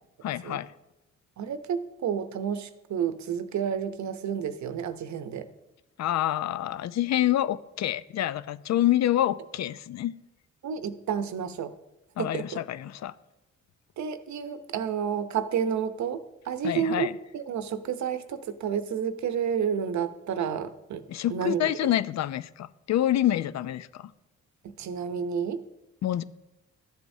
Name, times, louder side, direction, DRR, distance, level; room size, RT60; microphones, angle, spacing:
voice 1, 0.2-0.7 6.0-10.2 12.2-13.1 16.6-17.1 21.1-24.1 26.0-26.2, left 12 dB, 65° left, 0.5 m, -27 dB
voice 2, 1.4-5.5 10.6-11.7 12.2-12.6 14.0-21.0 21.3-21.7 24.8-25.6, right 7 dB, 70° right, 0.8 m, -30 dB
14.0 x 7.7 x 2.7 m
cardioid pair, 70°, 30 cm